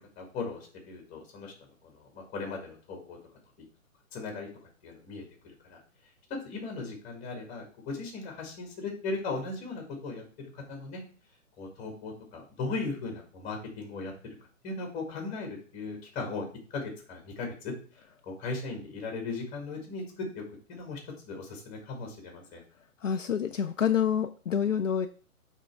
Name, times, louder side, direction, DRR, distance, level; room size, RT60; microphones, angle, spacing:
voice 1, 0.2-1.5 1.8-3.2 4.1-4.5 4.8-5.8 6.4-11.0 11.6-14.1 14.6-16.5 16.7-17.7 18.2-20.4 20.7-21.0 21.3-22.6, left 3 dB, 20° left, 2 dB, 1.9 m, -37 dB
voice 2, 23.0-25.1, left 8 dB, 65° left, 8 dB, 0.5 m, -27 dB
8.7 x 3.7 x 3.4 m, 0.39 s
figure-of-eight pair, 130°, 42 cm